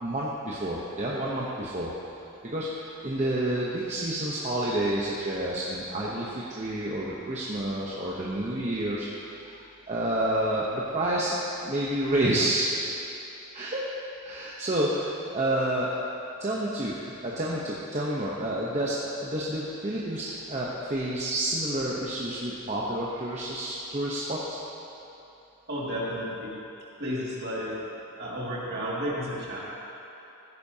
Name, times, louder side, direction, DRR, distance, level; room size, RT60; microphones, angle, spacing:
voice 1, 0.0-1.9 2.5-9.1 9.5-9.6 9.9-11.4 11.6-12.7 13.5-13.9 14.2-15.9 16.4-24.6, right 1 dB, 30° right, -6 dB, 0.9 m, -29 dB
voice 2, 25.7-26.6 27.0-27.8 28.2-29.6, equal, 45° right, -6 dB, 2.4 m, -32 dB
15.0 x 10.5 x 2.9 m, 3.0 s
head